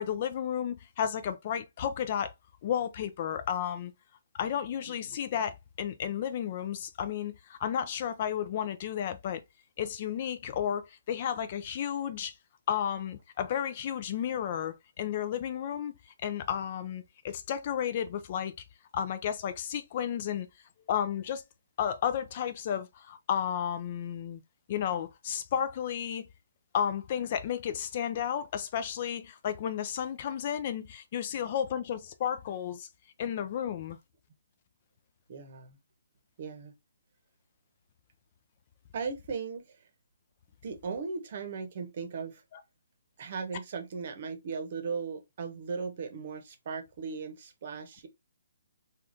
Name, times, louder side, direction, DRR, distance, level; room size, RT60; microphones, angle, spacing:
voice 1, 0.0-2.3 2.6-3.9 4.3-9.4 9.8-12.3 12.7-15.9 16.2-18.5 18.9-20.5 20.9-21.4 21.8-24.4 24.7-26.2 26.7-32.9 33.2-34.0 42.5-42.6, left 9 dB, 40° left, 0.4 m, -32 dB
voice 2, 35.3-35.8 36.4-36.7 38.9-39.7 40.6-42.4 43.2-48.1, right 5 dB, 50° right, 0.8 m, -37 dB
3.4 x 2.3 x 2.4 m
hypercardioid pair, 155°, 0 cm